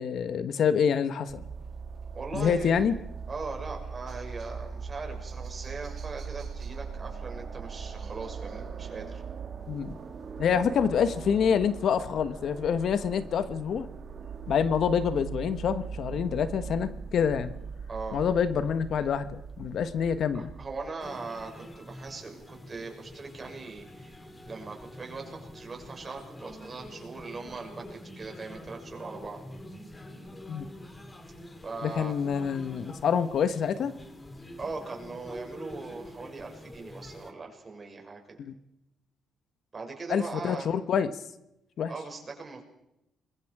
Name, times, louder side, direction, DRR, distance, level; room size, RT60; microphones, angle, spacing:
voice 1, 0.0-1.5 2.3-2.9 9.7-10.0 10.4-13.9 14.5-17.5 18.1-20.5 30.5-30.7 31.8-33.9 38.4-38.5 40.1-41.1 41.8-41.9, left 7 dB, 65° left, 11 dB, 1.3 m, -27 dB
sound 1, 1.3-20.9, right 6 dB, 50° right, 2.9 m, -40 dB
voice 2, 2.1-2.9 3.3-9.2 17.9-18.2 20.3-29.4 31.6-32.1 34.6-38.4 39.7-40.7 41.9-42.6, right 4 dB, 35° right, 2 dB, 6.4 m, -40 dB
sound 2, 21.0-37.3, left 1 dB, 20° left, 2.9 m, -46 dB
27.0 x 23.0 x 4.9 m, 0.86 s
cardioid pair, 90°, 0 cm